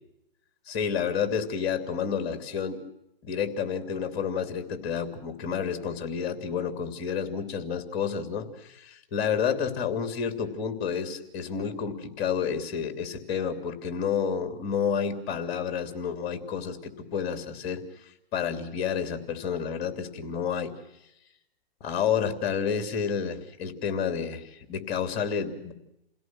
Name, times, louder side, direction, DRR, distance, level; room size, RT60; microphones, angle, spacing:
voice 1, 0.7-2.8 3.2-17.8 18.3-20.7 21.8-25.7, left 7 dB, 30° left, 8 dB, 3.0 m, -30 dB
28.5 x 17.5 x 6.1 m, 0.83 s
hypercardioid pair, 140°, 30 cm